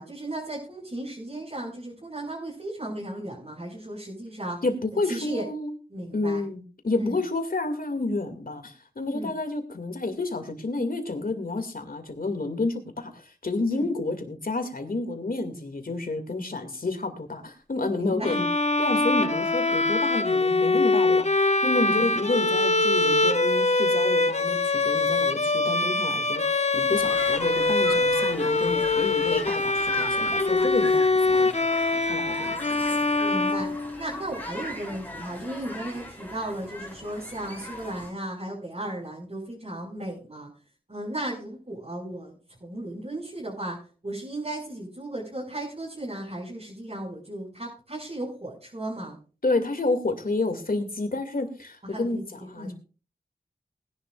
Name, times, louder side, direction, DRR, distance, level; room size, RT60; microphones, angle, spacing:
voice 1, 0.0-4.6 5.0-5.4 5.9-6.4 6.9-7.1 9.1-9.3 13.7-13.9 18.0-18.4 21.8-22.1 33.2-33.7 34.0-40.5 40.9-42.4 42.6-43.8 44.0-49.2 51.8-52.7, right 1 dB, 40° right, -6 dB, 5.7 m, -35 dB
voice 2, 4.6-5.7 6.1-18.5 18.8-32.6 49.4-52.7, left 2 dB, 60° left, 7 dB, 2.4 m, -30 dB
Bowed string instrument, 18.2-34.3, left 2 dB, 40° left, 0.9 m, -23 dB
sound 1, 26.9-38.1, left 1 dB, 10° left, 4.4 m, -39 dB
20.0 x 11.0 x 2.5 m, 0.35 s
wide cardioid pair, 55°, 17 cm